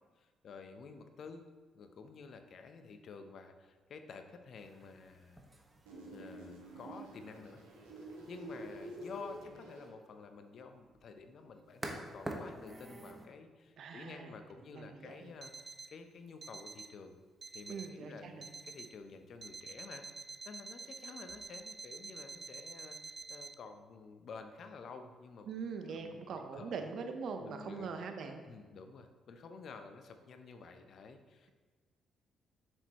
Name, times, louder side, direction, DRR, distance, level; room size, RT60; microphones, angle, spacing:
voice 1, 0.2-1.5 1.7-5.5 6.1-7.6 8.3-15.5 15.9-17.2 17.5-20.1 20.5-25.5 25.9-26.2 26.5-26.7 27.4-27.9 28.5-31.5, left 4 dB, 60° left, 7 dB, 0.7 m, -51 dB
sound 1, 4.6-13.3, right 1 dB, 20° right, 1.3 m, -50 dB
sound 2, 5.9-9.9, right 1 dB, 85° right, 1.2 m, -48 dB
voice 2, 13.8-14.3 14.7-15.3 17.7-18.5 25.5-28.4, right 5 dB, 65° right, 6 dB, 0.8 m, -42 dB
Alarm, 15.4-16.0 16.4-17.0 17.4-18.0 18.4-19.0 19.4-23.5, right 4 dB, 40° right, 0.4 m, -48 dB
7.6 x 6.3 x 3.0 m, 1.4 s
hypercardioid pair, 45°, 0 cm